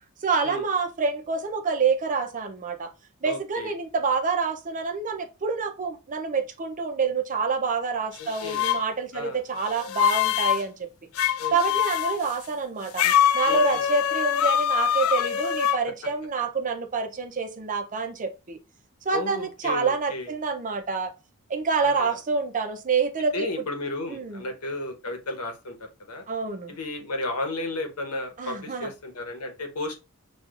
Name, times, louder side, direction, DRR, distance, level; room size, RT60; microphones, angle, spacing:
voice 1, 0.2-2.9 3.2-10.9 11.5-13.0 13.3-18.6 19.0-21.1 21.5-23.5 24.1-24.4 26.3-26.8 28.4-28.9, right 4 dB, 35° right, 0.5 m, -27 dB
voice 2, 3.2-3.7 8.2-8.7 9.1-9.4 11.4-11.8 13.4-13.8 19.1-20.3 21.8-22.2 23.3-25.7 26.1-26.2 26.7-29.9, left 2 dB, 85° left, 1.0 m, -33 dB
sound 1, 8.2-8.8 9.7-10.6 11.2-12.2 13.0-15.8, left 10 dB, 65° left, 0.4 m, -24 dB
6.3 x 2.3 x 2.4 m
head